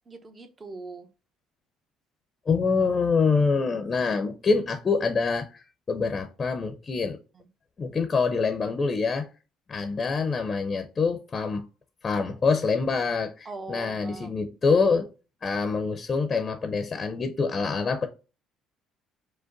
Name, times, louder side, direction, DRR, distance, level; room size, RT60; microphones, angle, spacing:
voice 1, 0.1-1.1 7.3-7.5 13.4-14.3, right 3 dB, 30° right, 0.8 m, -41 dB
voice 2, 2.5-7.2 7.8-9.3 9.7-11.7 12.0-15.1 15.4-18.1, left 4 dB, 35° left, 0.6 m, -25 dB
5.1 x 2.1 x 3.9 m
supercardioid pair, 85°, 0 cm